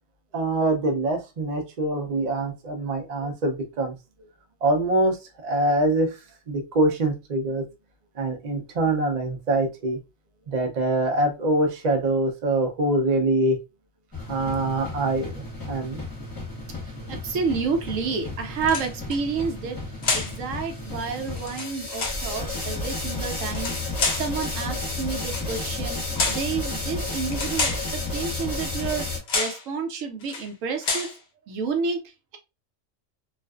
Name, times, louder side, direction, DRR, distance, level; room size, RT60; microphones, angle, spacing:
voice 1, 0.3-3.9 4.2-4.3 4.6-6.2 6.5-7.7 8.2-10.0 10.5-13.6 14.3-16.0, right 2 dB, 50° right, 4 dB, 0.5 m, -24 dB
sound 1, 14.1-29.2, left 2 dB, 20° left, 0.9 m, -32 dB
voice 2, 17.1-19.8 20.1-23.8 24.1-27.7 28.1-29.1 29.3-31.1 31.5-32.0, right 5 dB, 75° right, 5 dB, 1.0 m, -29 dB
sound 2, 18.6-19.2 20.0-20.4 21.3-22.2 23.4-24.3 25.2-25.5 26.1-26.5 27.3-27.9 28.8-29.0 29.3-29.6 30.2-30.5 30.8-31.2, left 4 dB, 50° left, 0.7 m, -28 dB
2.4 x 2.4 x 2.3 m, 0.25 s
omnidirectional pair, 1.4 m